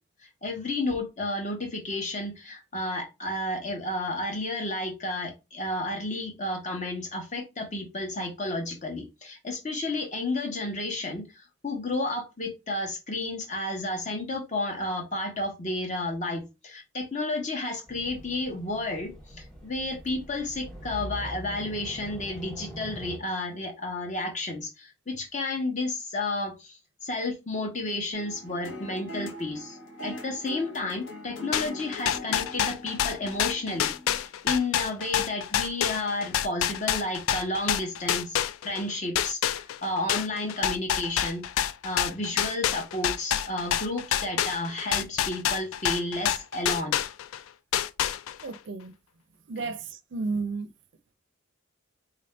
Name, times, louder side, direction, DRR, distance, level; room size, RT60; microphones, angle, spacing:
voice 1, 0.2-38.4 38.6-41.4 41.8-47.0 49.6-49.7, left 2 dB, 35° left, 0.9 m, -32 dB
sound 1, 17.9-23.2, equal, ahead, 1.1 m, -42 dB
sound 2, 28.1-35.6 36.1-36.2, left 1 dB, 65° left, 1.0 m, -42 dB
sound 3, 31.5-38.8 39.2-47.4 47.7-48.5, left 10 dB, 85° left, 0.3 m, -27 dB
voice 2, 48.4-48.9 49.5-50.7, right 4 dB, 60° right, 0.5 m, -32 dB
3.8 x 2.5 x 3.3 m
head